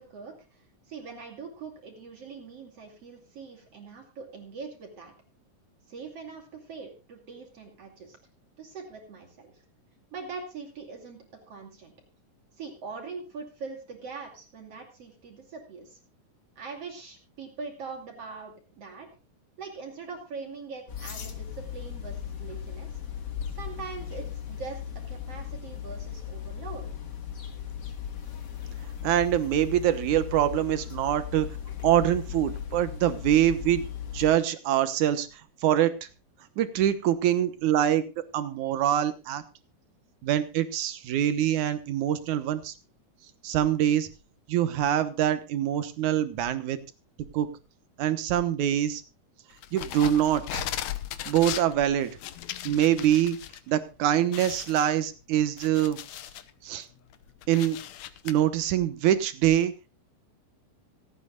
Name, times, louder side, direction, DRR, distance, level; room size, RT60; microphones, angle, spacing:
voice 1, 0.0-5.1 5.9-8.2 8.6-9.6 10.1-11.9 12.6-16.0 16.6-19.1 19.6-23.0 23.5-26.9, right 4 dB, 50° right, 2 dB, 3.4 m, -42 dB
sound 1, 20.9-34.4, left 9 dB, 40° left, 1.7 m, -37 dB
voice 2, 29.0-31.5 31.8-33.9 34.1-35.9 36.6-38.0 38.3-39.4 40.2-42.7 43.4-44.1 44.5-46.8 47.3-47.5 48.0-49.0 49.7-50.6 51.3-52.2 52.6-53.4 53.7-56.0 56.6-56.9 57.5-57.8 58.2-59.7, right 11 dB, 70° right, 11 dB, 2.5 m, -24 dB
sound 2, 49.6-53.6 53.9-54.0 54.3-56.5 57.0-58.3, left 12 dB, 70° left, 2.0 m, -37 dB
26.0 x 9.0 x 2.4 m, 0.28 s
omnidirectional pair, 3.7 m